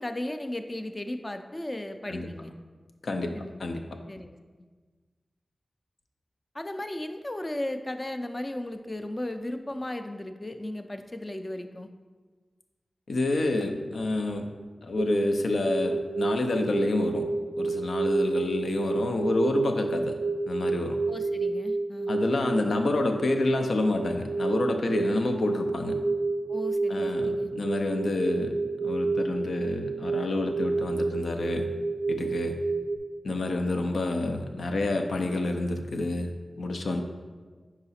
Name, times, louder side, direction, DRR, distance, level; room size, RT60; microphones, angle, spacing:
voice 1, 0.0-2.5 3.3-3.5 4.1-4.4 6.5-11.9 21.1-22.1 26.5-27.5, left 1 dB, 30° left, 7 dB, 0.4 m, -35 dB
voice 2, 3.0-3.8 13.1-14.5 14.8-17.3 17.6-20.1 20.5-21.0 22.1-25.9 26.9-28.5 28.8-31.7 32.1-32.6 33.2-36.3 36.6-37.0, left 2 dB, 85° left, 5 dB, 0.5 m, -28 dB
sound 1, 15.0-33.0, right 3 dB, 80° right, 0.4 m, -30 dB
4.9 x 4.7 x 4.2 m, 1.4 s
wide cardioid pair, 75°, 0 cm